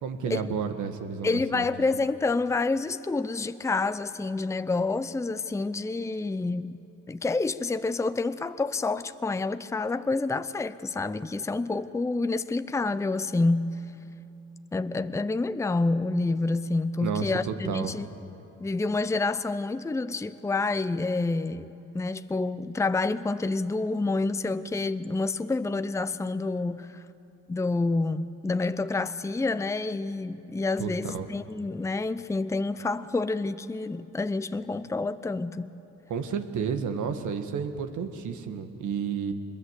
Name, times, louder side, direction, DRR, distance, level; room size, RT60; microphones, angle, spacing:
voice 1, 0.0-1.7 17.0-17.9 30.8-31.3 36.1-39.3, right 6 dB, 75° right, 1.8 m, -31 dB
voice 2, 1.2-6.8 7.1-13.7 14.7-18.1 18.6-27.0 27.5-35.7, left 3 dB, 10° left, 0.6 m, -28 dB
23.5 x 21.5 x 8.2 m
cardioid pair, 90°, 30 cm